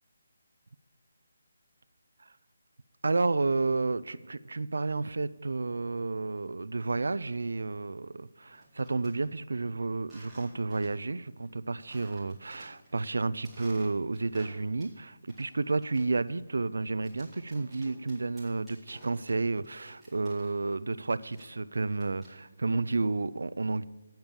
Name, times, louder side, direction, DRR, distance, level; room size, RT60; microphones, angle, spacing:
voice 1, 3.0-23.8, right 3 dB, 85° right, 16 dB, 0.5 m, -31 dB
sound 1, 8.5-9.1 10.0-11.1 11.4-11.5 11.9-13.0 13.4-15.0 15.3-20.8 21.0-22.6, right 2 dB, ahead, 2.4 m, -54 dB
8.9 x 8.7 x 7.3 m, 1.2 s
hypercardioid pair, 175°, 0 cm